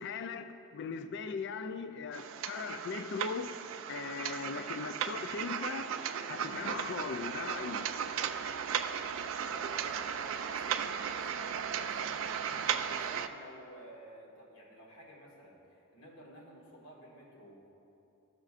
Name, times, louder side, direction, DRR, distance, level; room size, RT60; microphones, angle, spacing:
voice 1, 0.0-3.5 3.9-5.9 6.3-7.9, left 5 dB, 60° left, 0.4 m, -39 dB
sound 1, 2.1-13.3, right 8 dB, 70° right, 0.3 m, -36 dB
voice 2, 9.4-17.7, equal, 85° left, 1.7 m, -53 dB
14.0 x 6.5 x 2.5 m
head